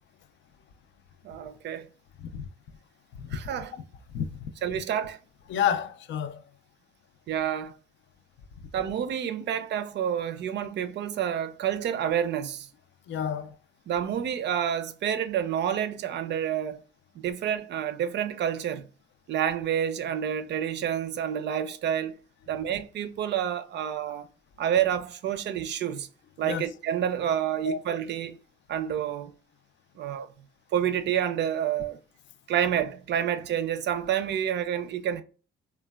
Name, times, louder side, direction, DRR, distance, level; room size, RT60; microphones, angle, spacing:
voice 1, 1.2-1.9 3.3-3.7 4.6-5.2 7.3-7.7 8.7-12.7 13.9-16.8 17.2-18.9 19.3-22.2 22.5-24.3 24.6-26.1 26.4-28.4 28.7-29.3 30.0-30.3 30.7-32.0 32.5-35.2, right 9 dB, 60° right, 0.4 m, -28 dB
voice 2, 4.1-4.8 5.5-6.4 13.1-13.6 26.4-26.6 27.6-27.8, left 8 dB, 70° left, 0.4 m, -30 dB
3.2 x 2.2 x 2.2 m
cardioid pair, 90°, 20 cm